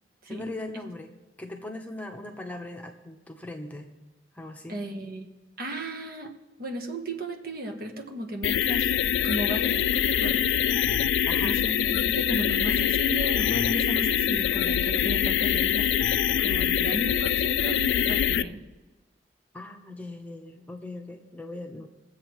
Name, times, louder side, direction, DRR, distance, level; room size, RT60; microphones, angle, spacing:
voice 1, 0.3-1.1 1.4-3.9 4.3-4.8 11.3-11.6 19.5-21.9, left 2 dB, 10° left, 2 dB, 0.9 m, -39 dB
voice 2, 4.7-5.3 5.6-6.3 6.6-8.9 9.2-10.5 11.4-15.9 16.4-18.6, right 1 dB, 55° right, 2 dB, 1.4 m, -34 dB
sound 1, 8.4-18.4, left 9 dB, 90° left, 0.3 m, -24 dB
22.5 x 7.9 x 3.1 m, 1.1 s
head